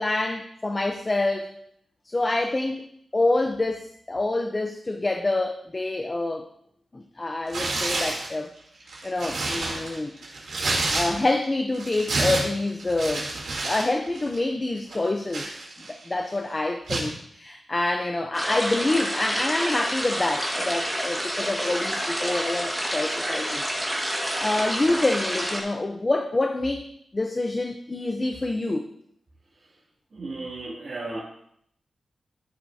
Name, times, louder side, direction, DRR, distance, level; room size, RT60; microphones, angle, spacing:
voice 1, 0.0-1.5 2.1-2.9 3.1-6.5 6.9-8.5 9.0-10.2 10.9-13.3 13.6-15.5 15.9-23.7 24.4-26.9 27.1-28.8, left 2 dB, 25° left, 5 dB, 0.6 m, -26 dB
Tearing, 7.5-8.3 8.8-11.4 11.7-13.9 14.2-14.4 14.9-16.1 16.9-17.1, right 2 dB, 75° right, 3.0 m, -29 dB
sound 1, 18.3-25.6, equal, 5° right, 1.8 m, -28 dB
voice 2, 30.1-31.2, right 2 dB, 50° right, -9 dB, 2.5 m, -34 dB
12.0 x 7.1 x 2.7 m, 0.70 s
wide cardioid pair, 135°, 0 cm